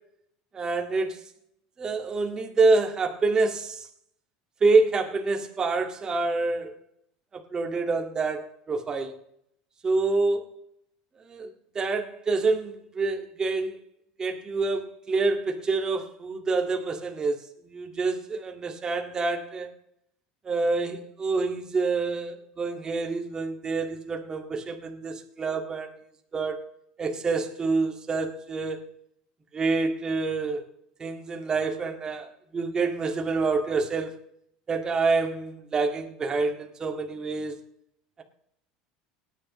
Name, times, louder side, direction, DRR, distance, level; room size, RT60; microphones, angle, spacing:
voice 1, 0.5-1.2 1.8-3.9 4.6-6.7 7.3-9.1 9.8-10.5 11.2-13.8 14.2-19.7 20.4-25.9 26.3-26.6 27.0-28.9 29.5-30.7 31.0-34.2 34.7-37.6, right 3 dB, 25° right, 1.9 m, -27 dB
19.0 x 10.0 x 3.1 m
supercardioid pair, 115°, 3 cm